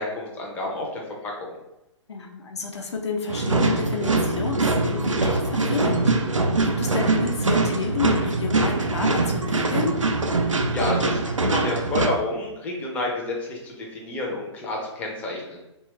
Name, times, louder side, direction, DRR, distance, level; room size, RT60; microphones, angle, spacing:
voice 1, 0.0-1.6 10.7-15.6, left 2 dB, 10° left, -2 dB, 0.4 m, -29 dB
voice 2, 2.1-10.0, left 4 dB, 65° left, 1 dB, 0.5 m, -30 dB
sound 1, 3.3-12.1, right 3 dB, 90° right, 0.4 m, -23 dB
2.8 x 2.3 x 2.9 m, 0.91 s
figure-of-eight pair, 120°, 16 cm